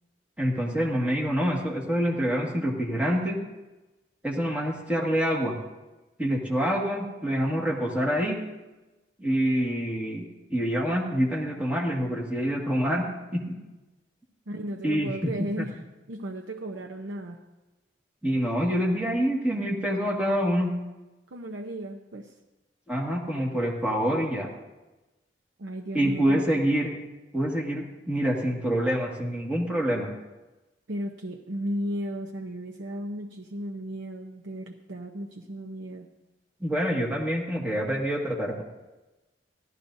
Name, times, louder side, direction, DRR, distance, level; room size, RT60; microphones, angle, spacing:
voice 1, 0.4-3.4 4.2-5.5 6.2-8.4 9.2-10.2 10.5-13.1 13.3-13.5 14.8-15.1 15.4-15.7 18.2-20.7 22.9-24.5 25.9-26.9 27.3-30.1 36.6-38.6, equal, 10° right, -2 dB, 1.8 m, -26 dB
voice 2, 14.5-15.7 16.1-17.4 21.3-22.3 25.6-26.5 30.9-36.1, equal, 80° right, 1 dB, 0.7 m, -35 dB
16.5 x 12.5 x 2.7 m, 1.1 s
head